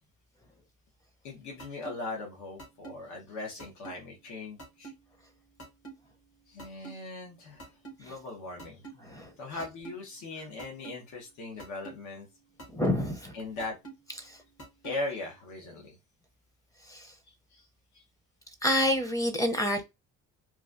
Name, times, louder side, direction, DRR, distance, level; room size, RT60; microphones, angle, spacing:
voice 1, 1.2-4.9 6.5-7.7 8.0-12.3 13.3-13.8 14.8-16.0 17.3-17.7 17.9-18.0 19.6-19.8, left 2 dB, 80° left, 1.1 m, -39 dB
sound 1, 1.6-1.9 2.6-2.9 3.6-3.9 4.6-4.9 5.6-5.9 6.6-6.9 7.6-7.9 8.6-8.9 9.6-9.9 10.6-10.9 11.6-11.9 12.6-12.9 13.6-13.9 14.6-14.9, right 4 dB, 50° left, 1.2 m, -44 dB
voice 2, 12.7-13.3 14.2-14.4 16.9-17.1 18.6-19.9, left 1 dB, 10° left, 0.6 m, -28 dB
3.0 x 2.3 x 2.5 m
cardioid pair, 95°, 29 cm